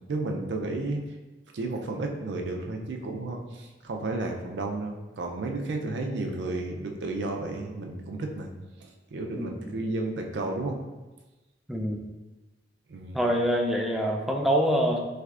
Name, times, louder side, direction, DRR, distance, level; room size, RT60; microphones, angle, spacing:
voice 1, 0.1-1.1 1.5-8.5 8.8-10.8 12.9-13.2, right 2 dB, 75° right, 3 dB, 0.4 m, -32 dB
voice 2, 11.7-12.1 13.1-15.1, equal, ahead, 0 dB, 0.3 m, -25 dB
3.4 x 3.2 x 2.4 m, 1.1 s
head